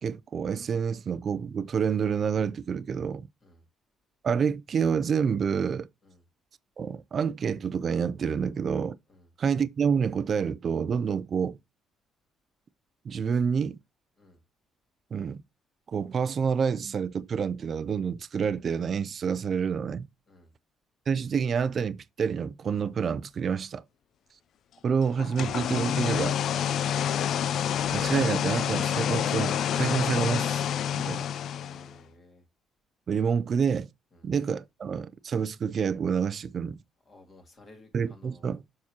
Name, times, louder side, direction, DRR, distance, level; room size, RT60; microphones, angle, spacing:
voice 1, 0.0-3.3 4.2-5.9 6.8-9.0 9.4-11.6 13.0-13.8 15.1-15.4 15.9-20.1 21.1-23.8 24.8-26.4 27.9-31.2 33.1-33.9 34.2-36.8 37.9-38.6, right 6 dB, 35° right, 0.4 m, -28 dB
sound 1, 25.2-32.0, left 9 dB, 50° left, 0.3 m, -28 dB
voice 2, 31.6-32.4 34.1-34.3 37.1-38.5, left 2 dB, 25° left, 1.9 m, -55 dB
7.2 x 5.9 x 2.8 m
cardioid pair, 175°, 0 cm